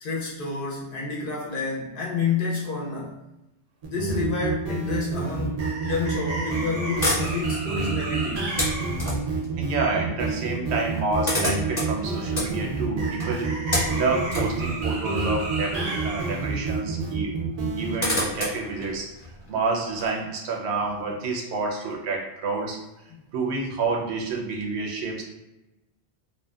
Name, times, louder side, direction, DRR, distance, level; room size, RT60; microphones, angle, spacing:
voice 1, 0.0-3.2 3.8-8.4, left 5 dB, 60° left, -3 dB, 0.7 m, -29 dB
sound 1, 3.8-17.9, right 4 dB, 55° right, 0.4 m, -28 dB
sound 2, 6.9-9.5 10.5-10.6 10.8-16.3 16.6-16.7 17.5-20.1, left 1 dB, 25° left, 0.8 m, -30 dB
voice 2, 9.1-17.3 17.8-22.8 23.3-25.2, right 3 dB, 75° right, 0 dB, 0.8 m, -29 dB
2.6 x 2.1 x 2.3 m, 0.96 s
omnidirectional pair, 1.1 m